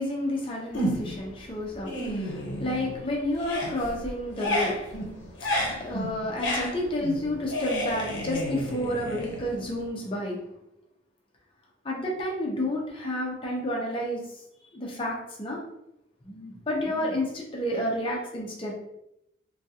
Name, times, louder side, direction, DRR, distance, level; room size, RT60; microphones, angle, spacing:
voice 1, 0.0-10.4 11.8-14.4 14.7-15.6 16.2-18.7, left 1 dB, 25° left, -2 dB, 0.6 m, -31 dB
sound 1, 0.7-1.3 1.7-3.0 3.3-9.8, equal, 70° left, 0.8 m, -31 dB
3.6 x 2.3 x 2.8 m, 0.81 s
head